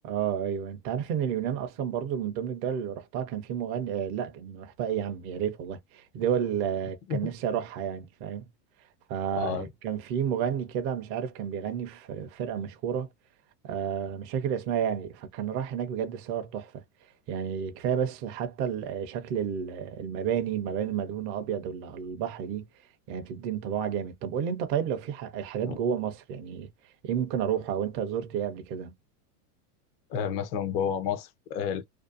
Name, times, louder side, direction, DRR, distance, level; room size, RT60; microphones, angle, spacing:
voice 1, 0.0-8.5 9.1-13.1 13.6-16.8 17.3-22.7 23.1-26.7 27.0-28.9, right 8 dB, 30° right, 0.4 m, -31 dB
voice 2, 9.3-9.7 25.6-25.8 30.1-31.8, left 8 dB, 30° left, 0.4 m, -30 dB
2.6 x 2.2 x 2.3 m
supercardioid pair, 140°, 48 cm